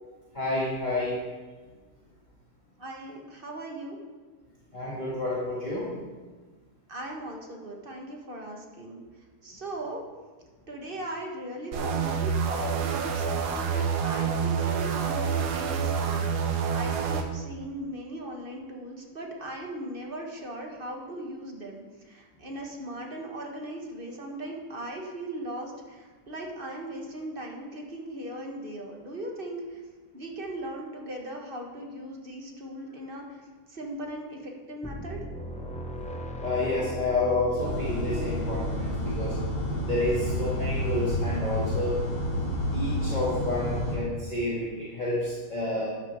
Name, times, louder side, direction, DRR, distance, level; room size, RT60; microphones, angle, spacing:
voice 1, 0.3-1.2 4.7-5.9 36.4-39.4 39.8-42.0 42.7-45.9, left 2 dB, 25° left, -7 dB, 2.1 m, -29 dB
voice 2, 2.8-4.0 6.9-9.0 9.4-10.0 10.7-29.8 30.1-33.4 33.7-35.2, right 1 dB, 35° right, 0 dB, 1.7 m, -38 dB
sound 1, 11.7-17.2, right 6 dB, 85° right, 1.6 m, -27 dB
sound 2, 34.8-42.3, equal, 5° left, 0.6 m, -38 dB
sound 3, 37.6-44.0, left 1 dB, 70° left, 3.7 m, -30 dB
13.0 x 10.5 x 3.7 m, 1.4 s
omnidirectional pair, 1.7 m